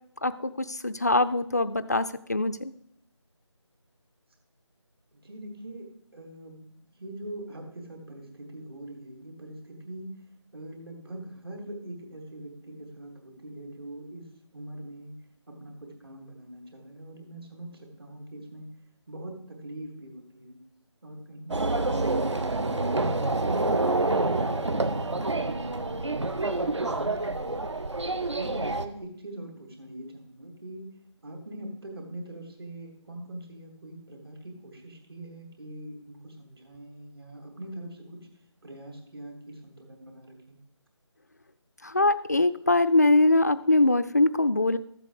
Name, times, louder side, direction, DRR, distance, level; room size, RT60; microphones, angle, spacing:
voice 1, 0.2-2.7 41.8-44.8, left 2 dB, 35° left, 13 dB, 0.4 m, -23 dB
voice 2, 5.1-6.7 7.0-10.1 10.5-14.2 14.5-15.1 15.5-18.7 19.1-20.6 21.0-25.9 26.3-28.0 28.3-30.9 31.2-38.2 38.6-40.6, right 1 dB, 50° right, 2 dB, 3.0 m, -42 dB
sound 1, 21.5-28.9, right 2 dB, 70° right, 1.1 m, -27 dB
13.5 x 7.7 x 4.9 m, 0.72 s
figure-of-eight pair, 165°, 16 cm